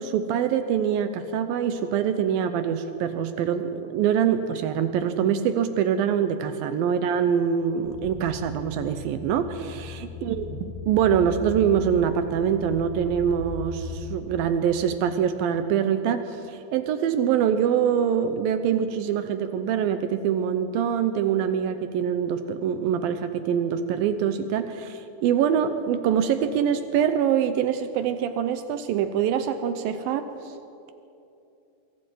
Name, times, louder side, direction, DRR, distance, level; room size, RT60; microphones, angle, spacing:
voice 1, 0.0-30.3, right 8 dB, 80° right, 9 dB, 2.1 m, -24 dB
sound 1, 7.8-14.2, left 3 dB, 50° left, 1.8 m, -38 dB
25.5 x 22.5 x 4.6 m, 2.8 s
omnidirectional pair, 5.0 m